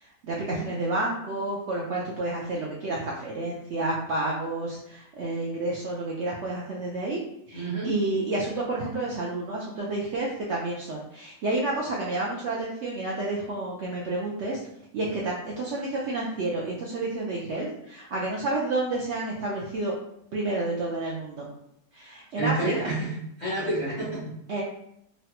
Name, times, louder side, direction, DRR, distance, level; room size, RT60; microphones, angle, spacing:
voice 1, 0.0-7.2 7.5-14.6 14.9-19.9 20.3-21.5 21.9-22.9 24.5-24.6, right 2 dB, 70° right, -4 dB, 0.6 m, -30 dB
voice 2, 7.5-7.9 22.4-24.3, right 2 dB, 40° left, -8 dB, 0.7 m, -29 dB
3.1 x 2.1 x 2.8 m, 0.76 s
omnidirectional pair, 1.6 m